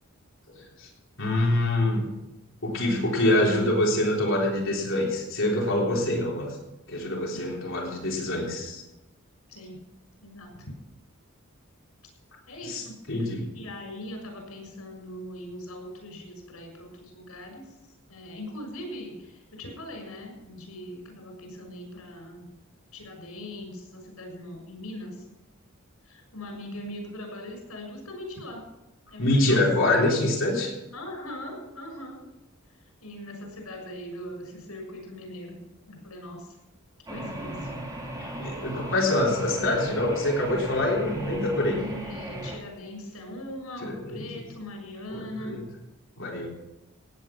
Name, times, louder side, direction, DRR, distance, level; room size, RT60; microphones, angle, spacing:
voice 1, 0.5-0.9 1.2-2.1 2.6-6.6 6.9-8.8 12.6-13.5 29.2-30.7 38.2-41.8 43.8-44.2 45.1-45.6 46.2-46.5, left 1 dB, 60° left, -2 dB, 3.7 m, -25 dB
voice 2, 12.5-12.9 13.2-13.3 13.5-17.6 18.1-22.4 22.9-25.2 26.0-28.6 29.1-29.6 30.9-32.2 33.0-35.6 35.9-36.6 37.1-37.7 41.7-45.6, left 1 dB, 90° left, 2 dB, 6.6 m, -40 dB
sound 1, 37.1-42.6, right 1 dB, 15° right, 2.7 m, -37 dB
17.0 x 9.3 x 6.0 m, 0.97 s
head